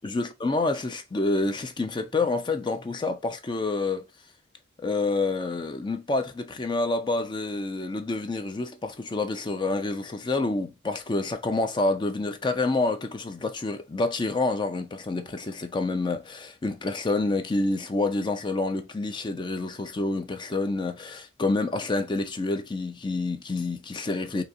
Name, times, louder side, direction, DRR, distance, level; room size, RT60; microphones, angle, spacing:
voice 1, 0.0-4.0 4.8-24.4, left 3 dB, 25° left, 0.4 m, -28 dB
3.9 x 2.7 x 2.6 m
head